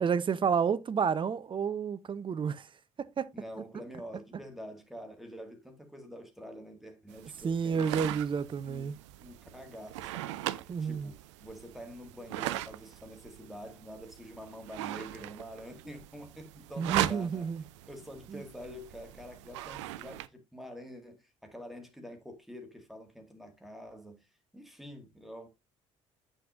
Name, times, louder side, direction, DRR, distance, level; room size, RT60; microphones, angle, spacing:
voice 1, 0.0-2.7 3.0-3.3 7.4-9.0 10.7-11.1 16.8-17.6 18.3-18.4, right 6 dB, 30° right, 0.7 m, -30 dB
voice 2, 3.3-8.2 8.6-17.5 17.9-25.5, equal, ahead, 1.9 m, -47 dB
sound 1, 7.1-20.3, right 14 dB, 70° right, 0.5 m, -39 dB
9.0 x 6.3 x 2.5 m
figure-of-eight pair, 55°, 16 cm